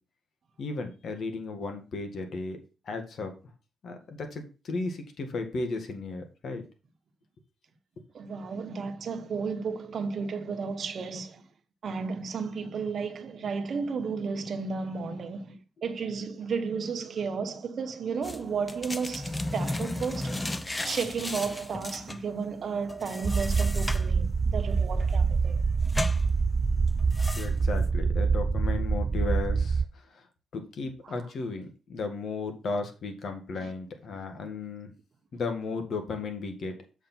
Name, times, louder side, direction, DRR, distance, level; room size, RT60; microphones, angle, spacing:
voice 1, 0.6-2.6 2.9-3.3 3.8-6.6 27.4-30.3 30.5-34.9 35.3-36.8, left 3 dB, 60° left, 1.8 m, -35 dB
voice 2, 8.1-11.4 11.8-20.4 20.8-25.6 31.0-31.2 33.6-33.7, right 5 dB, 55° right, 1.1 m, -33 dB
sound 1, 18.2-27.9, left 1 dB, 15° left, 0.6 m, -36 dB
sound 2, 23.2-29.9, right 5 dB, 40° right, 0.3 m, -26 dB
7.7 x 5.1 x 4.5 m
cardioid pair, 90°, 0 cm